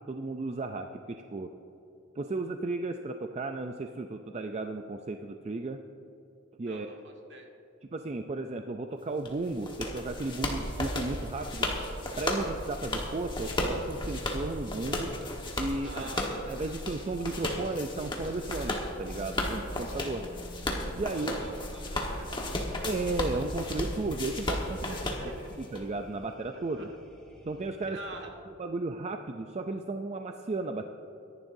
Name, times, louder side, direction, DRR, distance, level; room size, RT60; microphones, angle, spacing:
voice 1, 0.1-1.5 2.2-5.8 6.6-6.9 7.9-11.7 12.2-15.1 15.6-16.1 16.5-20.3 21.0-21.4 22.8-25.0 25.6-26.9 27.5-28.0 28.6-30.9, right 2 dB, 30° right, 6 dB, 0.4 m, -34 dB
voice 2, 6.6-7.5 12.4-12.5 15.8-16.8 21.0-22.6 24.8-25.6 26.5-27.0 27.8-28.4, right 2 dB, 55° right, 1 dB, 1.7 m, -46 dB
sound 1, 9.2-25.8, left 1 dB, 20° left, 1.3 m, -34 dB
sound 2, 17.9-28.3, left 1 dB, 5° left, 1.7 m, -51 dB
23.5 x 11.0 x 2.7 m, 2.9 s
head